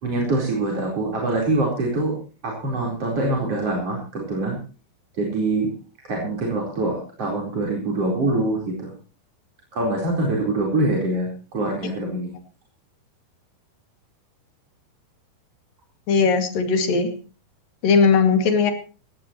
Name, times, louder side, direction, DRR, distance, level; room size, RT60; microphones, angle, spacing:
voice 1, 0.0-2.2 2.4-4.6 5.2-5.7 6.0-8.9 9.7-12.3, right 2 dB, 35° right, -2 dB, 5.0 m, -24 dB
voice 2, 16.1-17.1 17.8-18.7, left 5 dB, 55° left, 6 dB, 3.8 m, -18 dB
18.0 x 18.0 x 3.1 m, 0.36 s
omnidirectional pair, 5.1 m